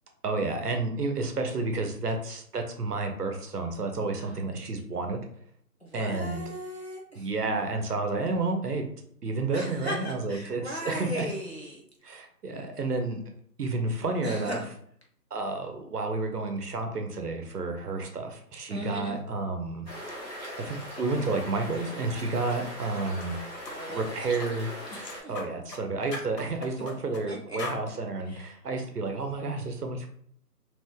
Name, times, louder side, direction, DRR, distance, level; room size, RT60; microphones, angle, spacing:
voice 1, 0.2-5.2 5.9-6.4 7.2-8.9 9.2-11.3 12.0-13.2 13.6-14.6 15.3-19.9 20.6-23.4 23.9-24.7 25.3-30.1, right 3 dB, 70° right, 4 dB, 0.7 m, -30 dB
voice 2, 5.8-7.3 9.5-11.8 14.2-14.7 18.7-19.2 23.7-24.6 24.9-25.3 27.3-27.6 28.3-28.6, equal, 40° left, -3 dB, 0.5 m, -38 dB
sound 1, 19.9-25.2, equal, 30° right, 0.8 m, -40 dB
sound 2, 23.1-23.3 23.7-23.8 24.3-24.5 24.9-25.8 26.1-27.3 27.6-27.8, left 3 dB, 75° left, 0.8 m, -39 dB
2.5 x 2.2 x 3.5 m, 0.63 s
figure-of-eight pair, 175°, 49 cm